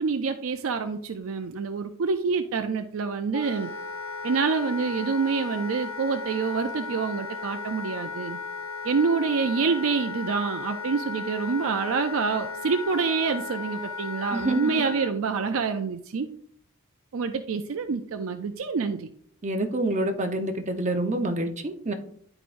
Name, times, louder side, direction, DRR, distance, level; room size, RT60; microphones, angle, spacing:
voice 1, 0.0-3.7 4.2-8.4 8.8-16.3 17.1-19.1, right 5 dB, 70° right, 7 dB, 0.5 m, -27 dB
Wind instrument woodwind instrument, 3.3-15.1, left 4 dB, 80° left, 1.0 m, -36 dB
voice 2, 19.4-21.9, right 1 dB, 35° right, 5 dB, 0.8 m, -27 dB
11.0 x 4.8 x 2.6 m, 0.63 s
head